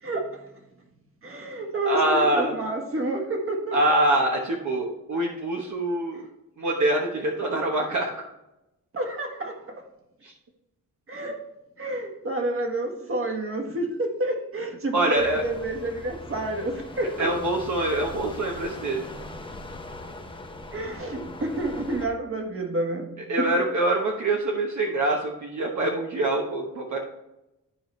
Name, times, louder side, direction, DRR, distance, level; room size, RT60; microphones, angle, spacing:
voice 1, 0.0-0.4 1.2-3.8 8.9-9.8 11.1-11.4 11.8-17.3 20.7-23.5, right 2 dB, 40° right, 2 dB, 1.6 m, -29 dB
voice 2, 1.9-2.5 3.7-6.2 6.6-8.3 10.2-10.3 14.9-15.4 17.2-19.0 23.3-27.0, right 1 dB, 55° right, 0 dB, 1.2 m, -25 dB
sound 1, 15.2-22.1, left 2 dB, 15° left, 0.8 m, -40 dB
12.5 x 5.0 x 3.2 m, 0.93 s
wide cardioid pair, 165°, 34 cm